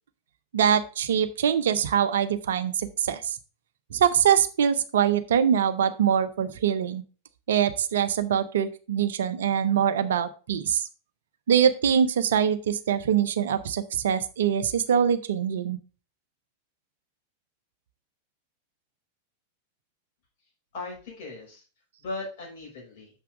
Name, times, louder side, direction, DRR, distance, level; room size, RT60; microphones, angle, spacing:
voice 1, 0.5-3.4 3.9-7.0 7.5-10.9 11.5-15.8, right 8 dB, 60° right, 12 dB, 0.7 m, -23 dB
voice 2, 20.7-21.6 22.0-23.1, left 3 dB, 50° left, -2 dB, 5.3 m, -38 dB
7.0 x 5.9 x 4.8 m, 0.35 s
figure-of-eight pair, 90°, 0 cm